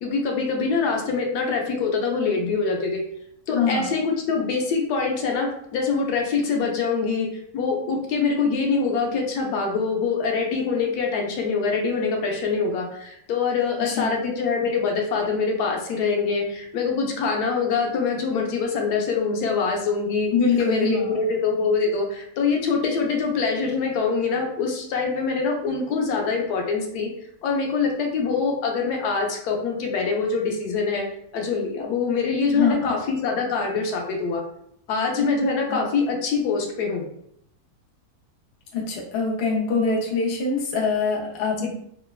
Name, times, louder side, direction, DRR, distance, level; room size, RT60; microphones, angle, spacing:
voice 1, 0.0-3.0 3.5-7.3 7.5-20.3 20.6-27.1 27.4-31.0 31.3-34.4 34.9-37.0 41.6-41.7, left 4 dB, 90° left, 1 dB, 1.1 m, -24 dB
voice 2, 3.5-3.9 13.8-14.2 20.3-21.2 32.5-32.9 35.7-35.8 38.7-41.7, left 4 dB, 60° left, -2 dB, 0.7 m, -24 dB
3.1 x 2.1 x 2.2 m, 0.71 s
omnidirectional pair, 1.6 m